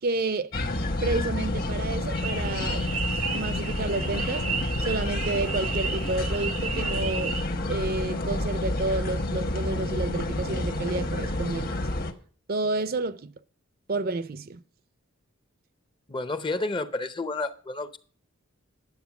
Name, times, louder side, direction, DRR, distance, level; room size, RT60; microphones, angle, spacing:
voice 1, 0.0-0.5 1.0-2.9 3.3-4.5 4.8-7.4 7.7-11.7 12.5-13.3 13.9-14.6, right 2 dB, 45° right, 0.6 m, -30 dB
sound 1, 0.5-12.1, left 1 dB, 45° left, 1.3 m, -29 dB
sound 2, 2.1-7.4, right 6 dB, 90° right, 1.4 m, -33 dB
voice 2, 16.1-18.0, left 2 dB, 20° left, 0.7 m, -30 dB
10.5 x 7.8 x 5.9 m
head